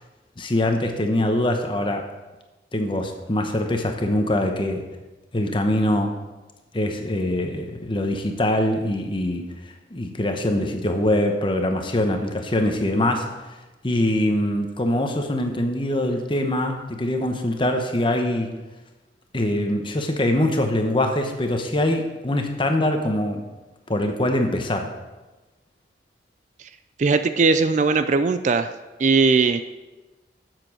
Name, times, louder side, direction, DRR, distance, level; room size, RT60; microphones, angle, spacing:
voice 1, 0.4-2.1 2.7-4.8 5.3-6.2 6.7-13.3 13.8-18.5 19.3-23.5 23.9-24.9, left 1 dB, 25° left, 5 dB, 1.0 m, -23 dB
voice 2, 27.0-28.7 29.0-29.6, right 4 dB, 40° right, 11 dB, 0.4 m, -19 dB
7.7 x 7.3 x 6.3 m, 1.1 s
head